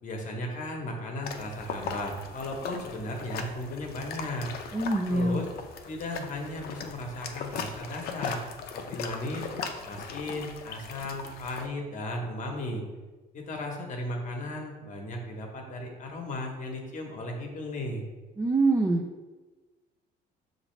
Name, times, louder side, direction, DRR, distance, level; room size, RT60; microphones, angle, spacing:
voice 1, 0.0-4.5 5.1-5.5 5.9-9.5 9.8-12.8 13.3-18.0, left 1 dB, 50° left, 1 dB, 0.9 m, -35 dB
sound 1, 1.2-11.7, left 5 dB, 65° left, 0.5 m, -39 dB
voice 2, 4.7-5.4 18.4-19.0, right 2 dB, 15° right, 1 dB, 0.4 m, -24 dB
6.1 x 2.6 x 3.1 m, 1.2 s
cardioid pair, 110°, 17 cm